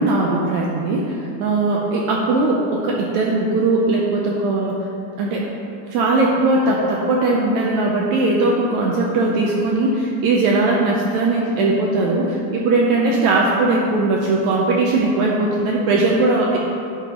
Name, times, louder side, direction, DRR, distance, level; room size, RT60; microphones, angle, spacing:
voice 1, 0.0-4.9 5.2-5.5 5.9-16.6, right 2 dB, 80° right, -2 dB, 1.7 m, -19 dB
11.5 x 5.1 x 3.7 m, 2.6 s
omnidirectional pair, 3.9 m